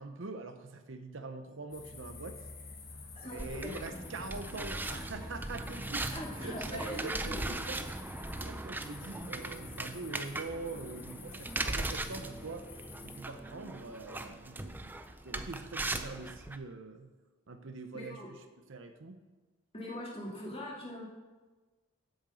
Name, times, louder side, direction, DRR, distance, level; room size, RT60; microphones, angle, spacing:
voice 1, 0.0-2.4 3.2-8.1 8.3-12.7 13.0-15.0 15.2-17.1 17.5-18.4 18.7-19.2, right 3 dB, 60° right, 8 dB, 0.8 m, -44 dB
sound 1, 1.7-13.2, left 3 dB, 45° left, 1.5 m, -49 dB
voice 2, 3.1-4.0 6.1-7.5 17.9-18.3 19.7-21.1, left 1 dB, 25° left, -3 dB, 2.3 m, -42 dB
sound 2, 3.4-16.6, right 2 dB, 10° right, 0.4 m, -39 dB
8.0 x 6.5 x 7.9 m, 1.3 s
head